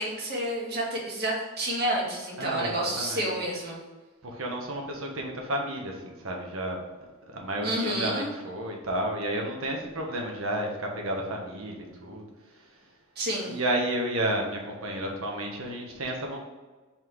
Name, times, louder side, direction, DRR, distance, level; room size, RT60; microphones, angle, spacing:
voice 1, 0.0-3.8 7.6-8.3 13.2-13.5, right 1 dB, 50° right, -4 dB, 2.2 m, -29 dB
voice 2, 2.4-3.3 4.2-6.8 7.3-12.2 13.5-16.4, right 1 dB, 80° right, 1 dB, 1.5 m, -31 dB
5.9 x 4.4 x 4.7 m, 1.3 s
head